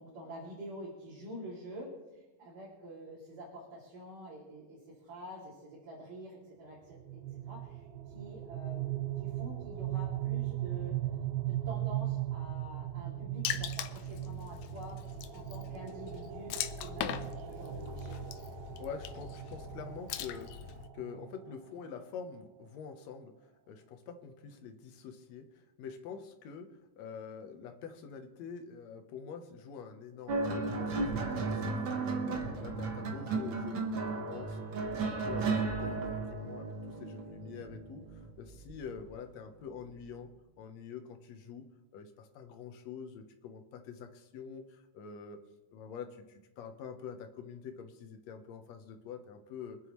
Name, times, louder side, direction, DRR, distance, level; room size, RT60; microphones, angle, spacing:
voice 1, 0.0-11.0 11.4-15.0 15.3-18.2, equal, 90° right, -6 dB, 4.4 m, -47 dB
sound 1, 6.9-21.8, right 14 dB, 75° right, 1.7 m, -38 dB
Water / Splash splatter, 13.5-20.9, left 11 dB, 80° left, 1.8 m, -41 dB
voice 2, 18.8-20.6 20.9-40.3 40.6-41.7 41.9-45.4 45.7-49.8, left 6 dB, 65° left, 6 dB, 2.1 m, -46 dB
sound 2, 30.3-39.0 40.0-40.3, right 3 dB, 55° right, 1.5 m, -35 dB
24.5 x 9.1 x 3.1 m, 1.1 s
omnidirectional pair, 3.7 m